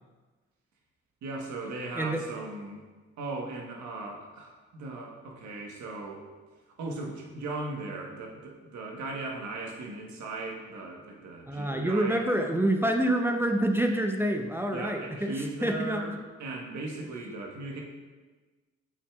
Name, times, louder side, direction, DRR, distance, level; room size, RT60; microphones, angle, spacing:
voice 1, 1.2-2.8 3.2-6.2 6.8-12.3 14.7-16.1 16.4-17.8, right 2 dB, 70° right, 1 dB, 1.3 m, -38 dB
voice 2, 11.5-16.0, right 1 dB, 10° right, 3 dB, 0.6 m, -27 dB
7.9 x 5.9 x 2.4 m, 1.3 s
supercardioid pair, 55°, 30 cm